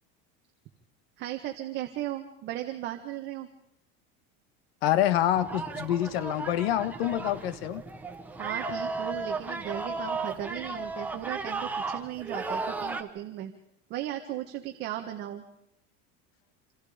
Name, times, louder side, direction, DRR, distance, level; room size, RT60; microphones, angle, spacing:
voice 1, 1.2-3.5 8.3-13.5 13.9-15.4, right 12 dB, 35° right, 4 dB, 1.5 m, -36 dB
voice 2, 4.8-7.8, left 12 dB, 75° left, 14 dB, 1.6 m, -26 dB
sound 1, 5.4-13.0, right 3 dB, 5° right, 1.1 m, -35 dB
28.0 x 27.0 x 5.1 m, 0.83 s
cardioid pair, 175°, 30 cm